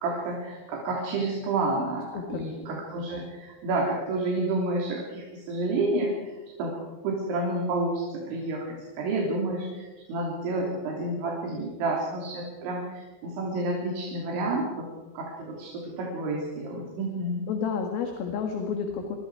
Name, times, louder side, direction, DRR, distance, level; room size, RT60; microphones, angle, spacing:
voice 1, 0.0-6.1 6.6-14.9 15.2-17.5, right 2 dB, 90° right, -2 dB, 5.5 m, -30 dB
voice 2, 17.5-19.2, left 6 dB, 65° left, 3 dB, 3.3 m, -30 dB
27.0 x 23.5 x 4.8 m, 1.2 s
omnidirectional pair, 5.2 m